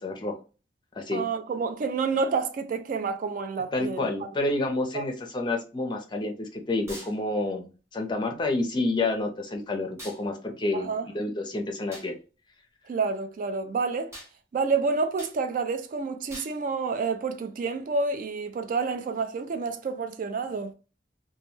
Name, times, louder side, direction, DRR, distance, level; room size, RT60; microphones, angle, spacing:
voice 1, 0.0-0.4 0.9-1.2 3.7-7.7 7.9-12.1, left 2 dB, 25° left, 0.5 m, -29 dB
voice 2, 1.1-4.1 4.9-5.1 10.7-11.1 12.9-14.1 14.5-20.7, right 4 dB, 50° right, 0.3 m, -29 dB
sound 1, 6.9-7.2 10.0-10.2 11.9-12.1 14.1-14.3 15.2-15.4 16.3-16.6, equal, 15° right, 0.9 m, -42 dB
2.2 x 2.1 x 3.0 m
head